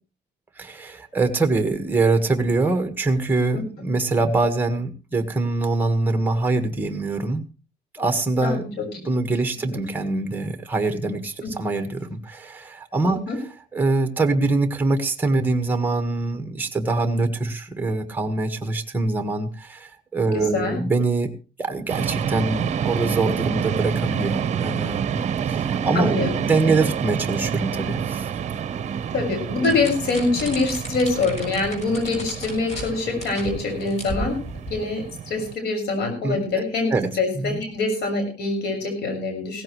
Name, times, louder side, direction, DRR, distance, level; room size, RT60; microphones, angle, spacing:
voice 1, 0.6-7.4 7.9-13.2 13.7-21.3 21.6-25.2 25.5-28.3 36.2-36.6 36.9-37.1 37.3-37.6, right 3 dB, 10° right, 7 dB, 1.6 m, -24 dB
voice 2, 20.3-20.8 25.9-26.4 29.1-34.4 34.7-39.6, left 3 dB, 75° left, 4 dB, 6.3 m, -25 dB
sound 1, 21.9-35.6, right 8 dB, 45° right, 0.9 m, -28 dB
sound 2, 29.6-32.9 33.2-33.5 33.8-34.7, equal, 40° left, 6.7 m, -35 dB
16.5 x 15.0 x 3.2 m, 0.33 s
cardioid pair, 110°, 17 cm